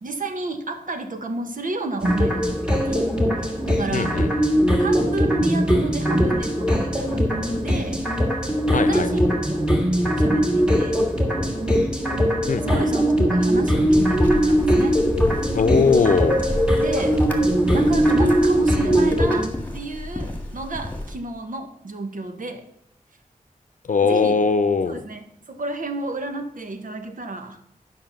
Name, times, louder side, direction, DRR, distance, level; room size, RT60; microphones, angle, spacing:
voice 1, 0.0-3.1 3.4-4.2 4.8-8.0 8.8-9.7 10.2-11.0 12.6-15.0 16.8-17.2 17.7-22.7 24.0-24.4 24.9-27.6, right 3 dB, 70° right, 6 dB, 1.1 m, -31 dB
sound 1, 2.0-19.5, equal, 5° right, 1.8 m, -20 dB
voice 2, 3.9-4.5 8.7-9.1 12.5-12.8 15.5-16.4 23.9-25.0, left 5 dB, 65° left, 11 dB, 0.7 m, -20 dB
sound 2, 13.7-21.2, left 1 dB, 10° left, 1.7 m, -33 dB
11.5 x 5.7 x 5.8 m, 0.75 s
wide cardioid pair, 110°, 14 cm